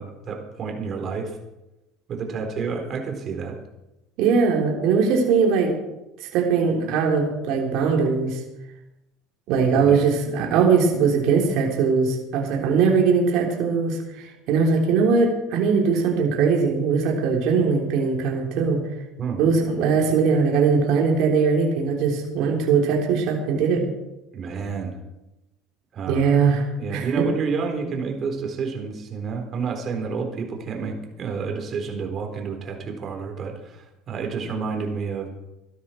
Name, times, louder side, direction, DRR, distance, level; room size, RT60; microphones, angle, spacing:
voice 1, 0.0-1.4 2.1-3.6 9.7-10.0 19.2-19.4 24.3-25.0 25.9-26.3 26.8-35.3, right 5 dB, 45° right, 3 dB, 4.1 m, -29 dB
voice 2, 4.2-5.7 6.3-8.4 9.5-18.8 19.4-23.8 26.1-26.7 26.9-27.1, right 5 dB, 65° right, 0 dB, 3.5 m, -20 dB
16.5 x 12.5 x 4.6 m, 0.97 s
supercardioid pair, 90°, 0 cm